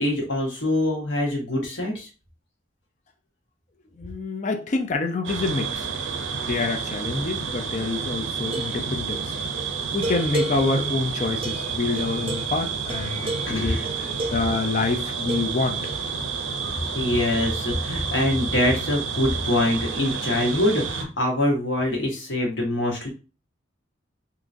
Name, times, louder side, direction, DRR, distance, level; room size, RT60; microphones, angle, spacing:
voice 1, 0.0-2.1 13.5-13.8 16.9-23.1, left 1 dB, 75° left, 1.3 m, -24 dB
voice 2, 4.0-5.9 6.5-9.3 9.9-15.8, left 3 dB, 40° left, 0.5 m, -27 dB
sound 1, 5.2-21.0, right 5 dB, 85° right, 0.6 m, -30 dB
sound 2, 8.4-14.7 15.3-16.1, right 2 dB, 30° right, 0.5 m, -34 dB
3.7 x 2.9 x 2.6 m
head